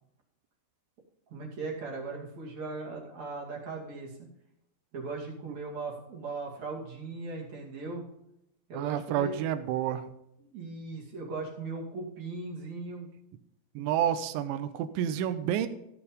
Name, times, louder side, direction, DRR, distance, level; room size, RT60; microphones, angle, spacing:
voice 1, 1.3-4.2 4.9-8.0 8.7-9.4 10.4-13.1, right 3 dB, 45° right, -3 dB, 3.1 m, -38 dB
voice 2, 8.7-10.0 13.8-15.7, right 10 dB, 90° right, 11 dB, 3.1 m, -29 dB
15.0 x 7.1 x 5.2 m, 0.80 s
omnidirectional pair, 5.2 m